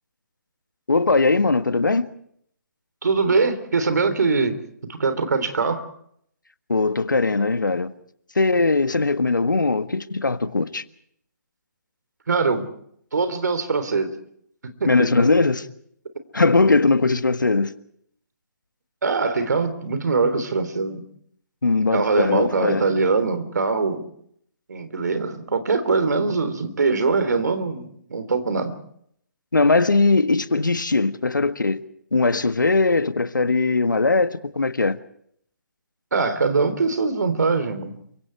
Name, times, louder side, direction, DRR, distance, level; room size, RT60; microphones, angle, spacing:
voice 1, 0.9-2.0 6.7-7.9 8.3-10.8 14.9-15.7 16.3-17.7 21.6-22.8 29.5-31.8 32.1-35.0, left 3 dB, 80° left, 1.5 m, -20 dB
voice 2, 3.0-4.6 4.9-5.9 12.3-12.7 13.1-14.1 14.8-15.1 19.0-21.0 21.9-24.1 24.7-28.8 36.1-37.9, right 4 dB, 65° right, 3.5 m, -22 dB
28.5 x 24.5 x 4.7 m
figure-of-eight pair, 140°, 10 cm